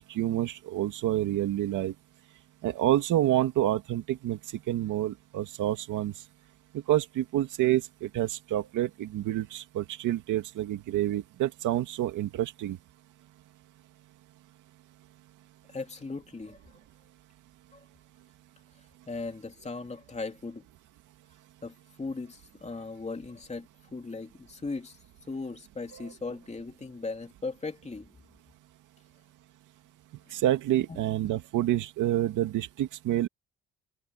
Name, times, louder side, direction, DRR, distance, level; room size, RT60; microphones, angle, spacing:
voice 1, 0.0-1.9 2.6-6.1 6.7-12.8 25.9-26.0 30.3-33.3, right 13 dB, 85° right, 2.3 m, -28 dB
voice 2, 15.7-16.6 17.7-17.8 18.7-20.6 21.6-28.2 30.3-30.4 30.9-31.0, left 3 dB, 20° left, 2.9 m, -38 dB
cardioid pair, 90°, 30 cm